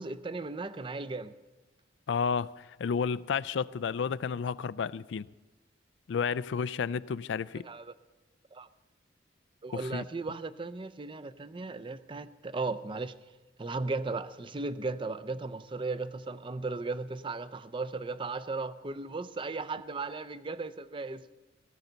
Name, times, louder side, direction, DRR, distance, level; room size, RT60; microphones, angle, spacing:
voice 1, 0.0-1.3 7.6-7.9 8.5-8.7 9.6-13.1 13.6-21.2, right 3 dB, 30° right, 0.5 m, -36 dB
voice 2, 2.1-5.3 6.1-7.6 9.7-10.0, left 6 dB, 80° left, 0.4 m, -31 dB
17.5 x 14.5 x 4.0 m
head